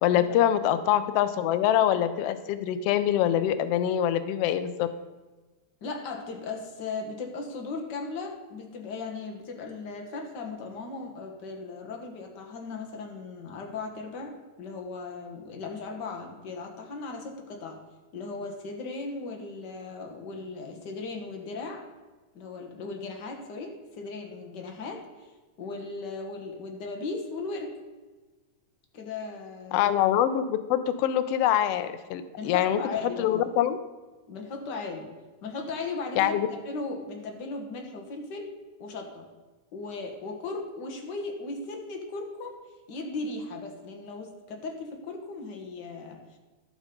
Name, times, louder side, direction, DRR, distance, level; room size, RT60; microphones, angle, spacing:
voice 1, 0.0-4.9 29.7-33.8 36.2-36.5, left 11 dB, 80° left, 11 dB, 1.4 m, -24 dB
voice 2, 5.8-17.8 18.1-21.8 22.3-25.3 25.6-27.7 28.9-29.9 32.4-33.5 34.3-35.1 35.4-36.4 36.7-38.5 38.8-39.3 39.7-42.6 42.9-46.2, left 3 dB, 50° left, 2 dB, 1.4 m, -37 dB
12.5 x 6.3 x 5.2 m, 1.3 s
omnidirectional pair, 3.4 m